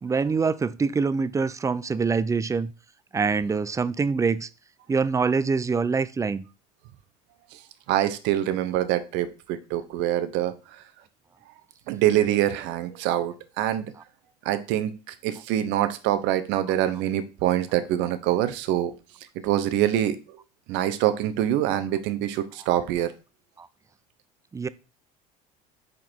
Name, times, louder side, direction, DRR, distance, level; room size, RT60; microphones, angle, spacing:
voice 1, 0.0-2.7 3.1-4.5 4.9-6.4 14.5-14.6 24.5-24.7, right 5 dB, 15° right, 0.4 m, -25 dB
voice 2, 7.9-10.5 11.9-13.9 14.4-18.9 19.3-20.4 20.7-23.1, right 12 dB, 65° right, 0.8 m, -25 dB
5.2 x 4.1 x 4.4 m
hypercardioid pair, 75°, 20 cm